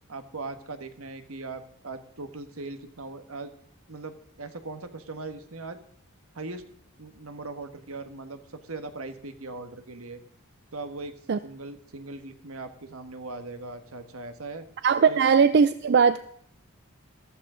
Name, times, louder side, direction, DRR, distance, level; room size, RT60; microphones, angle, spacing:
voice 1, 0.1-3.5 3.9-5.8 6.3-6.6 7.0-10.2 10.7-11.1 11.4-14.7 15.1-15.2, right 3 dB, 75° right, 9 dB, 1.4 m, -39 dB
voice 2, 14.8-16.2, right 6 dB, 50° right, 12 dB, 0.4 m, -19 dB
14.0 x 14.0 x 3.8 m, 0.65 s
head